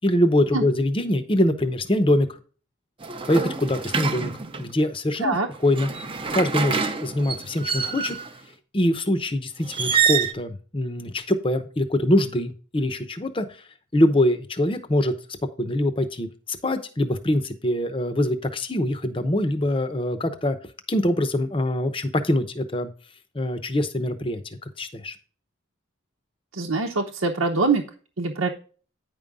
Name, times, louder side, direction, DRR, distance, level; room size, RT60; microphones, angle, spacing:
voice 1, 0.0-2.4 3.3-4.3 4.6-5.9 6.3-8.2 8.7-13.5 13.9-15.1 15.6-20.6 20.9-22.9 23.3-24.4 24.8-25.2, left 1 dB, 25° left, 10 dB, 0.7 m, -23 dB
sound 1, 3.0-4.7 5.5-8.4 9.6-10.3, right 6 dB, 25° right, 0.7 m, -26 dB
voice 2, 26.5-27.8 28.2-28.5, right 3 dB, 85° right, 0 dB, 1.0 m, -23 dB
9.5 x 5.4 x 3.6 m, 0.39 s
head